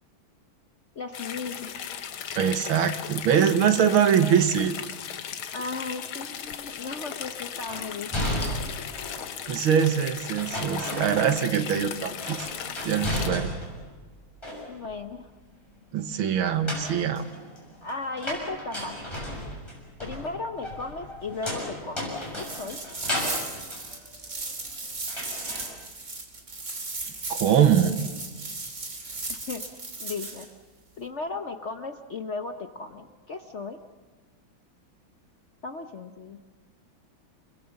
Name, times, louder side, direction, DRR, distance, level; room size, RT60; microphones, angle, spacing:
voice 1, 1.0-1.7 5.5-8.8 14.7-15.3 17.8-19.2 20.0-22.8 29.3-30.5 31.0-33.8 35.6-36.4, left 3 dB, 50° left, 7 dB, 0.9 m, -36 dB
sound 1, 1.1-13.3, left 8 dB, 80° left, 1.9 m, -37 dB
voice 2, 2.4-4.8 9.5-12.5 12.8-13.5 15.9-17.2 27.3-27.9, right 8 dB, 80° right, 10 dB, 2.1 m, -23 dB
sound 2, 7.7-9.3 10.4-11.7 11.9-13.8 14.2-15.0 16.4-24.7 25.1-25.7, left 1 dB, 10° left, 7.0 m, -34 dB
sound 3, 22.3-30.5, right 3 dB, 35° right, 3.0 m, -36 dB
29.5 x 21.0 x 7.1 m, 1.3 s
omnidirectional pair, 2.3 m